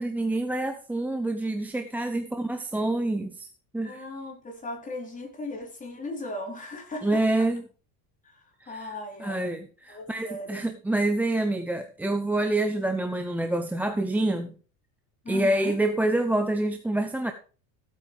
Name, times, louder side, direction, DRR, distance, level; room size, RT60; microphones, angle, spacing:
voice 1, 0.0-3.5 3.7-4.0 7.0-7.6 8.6-8.8 9.2-14.5 15.3-17.3, right 2 dB, 5° right, 6 dB, 0.6 m, -27 dB
voice 2, 3.8-7.5 8.2-9.6 9.9-10.6 15.2-15.8, left 2 dB, 20° left, 1 dB, 3.9 m, -38 dB
16.0 x 8.6 x 3.4 m, 0.38 s
cardioid pair, 160°, 41 cm